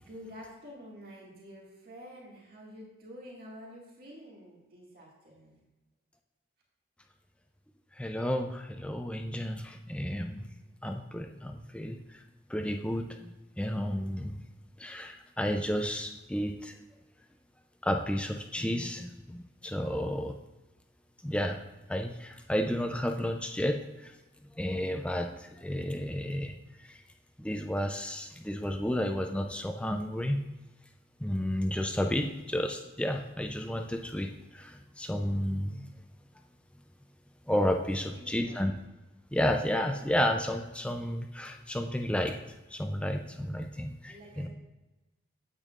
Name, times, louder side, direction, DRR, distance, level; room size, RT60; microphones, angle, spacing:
voice 1, 0.0-5.7 38.0-38.7 44.1-44.5, equal, 50° right, -3 dB, 2.1 m, -49 dB
voice 2, 8.0-10.5 10.8-12.2 12.5-14.4 14.8-16.8 17.8-20.4 21.2-21.6 21.9-24.1 24.5-26.5 26.9-27.0 27.4-30.4 31.2-35.9 37.5-38.7 39.3-42.4 42.7-44.5, equal, 5° left, 4 dB, 0.4 m, -32 dB
9.0 x 8.2 x 2.5 m, 1.1 s
head